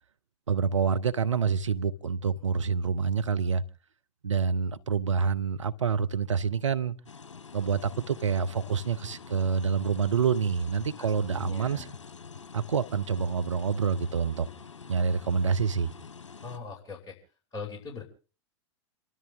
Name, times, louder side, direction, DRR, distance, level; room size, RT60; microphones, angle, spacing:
voice 1, 0.5-3.6 4.2-7.0 7.5-11.8 12.5-14.5 14.9-15.9, right 6 dB, 85° right, 0.9 m, -27 dB
sound 1, 7.1-16.6, left 5 dB, 80° left, 1.1 m, -46 dB
voice 2, 11.0-11.9 16.4-17.2 17.5-18.0, left 5 dB, 25° left, 6.3 m, -41 dB
29.5 x 13.0 x 3.6 m
figure-of-eight pair, 95°, 15 cm